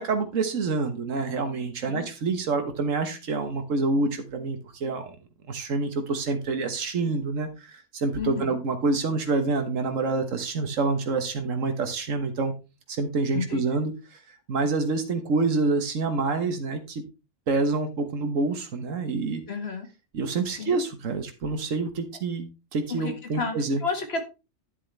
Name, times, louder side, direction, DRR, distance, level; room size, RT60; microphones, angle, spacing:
voice 1, 0.0-5.1 5.5-12.5 12.9-14.2 14.5-17.0 17.5-19.4 20.1-23.8, right 3 dB, 80° right, 7 dB, 1.7 m, -27 dB
voice 2, 8.2-8.6 13.3-13.6 19.5-19.9 20.6-20.8 22.9-24.2, left 4 dB, 55° left, 6 dB, 1.9 m, -31 dB
10.5 x 7.5 x 3.3 m, 0.28 s
omnidirectional pair, 1.3 m